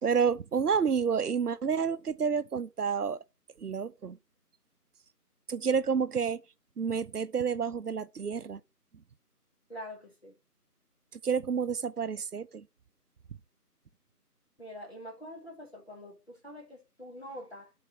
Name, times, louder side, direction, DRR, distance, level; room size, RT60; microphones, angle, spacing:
voice 1, 0.0-3.2 3.6-4.2 5.5-6.4 6.8-8.6 11.2-12.7, right 6 dB, 70° right, 0.6 m, -29 dB
voice 2, 9.7-10.3 14.6-17.7, equal, 40° left, 1.2 m, -45 dB
11.5 x 4.3 x 2.9 m
figure-of-eight pair, 170°, 48 cm